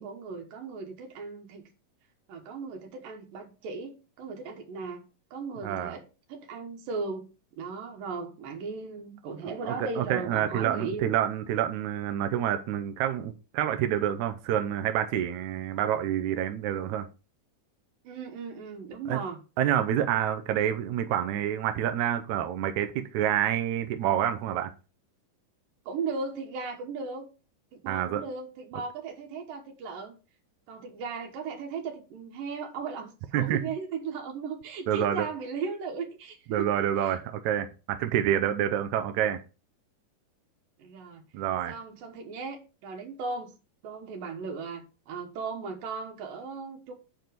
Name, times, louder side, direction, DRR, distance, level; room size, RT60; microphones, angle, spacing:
voice 1, 0.0-1.6 2.3-5.0 5.3-7.2 7.6-11.1 18.0-19.4 25.9-27.3 27.7-30.2 30.7-36.7 37.0-37.2 40.8-41.2 41.7-43.5 43.8-46.9, right 4 dB, 90° right, 2.9 m, -37 dB
voice 2, 5.6-6.0 9.6-17.1 19.1-19.2 19.6-24.7 27.9-28.2 33.3-33.6 34.9-35.3 36.5-39.4 41.3-41.7, right 10 dB, 75° right, 1.9 m, -28 dB
7.8 x 4.8 x 5.2 m
omnidirectional pair, 3.8 m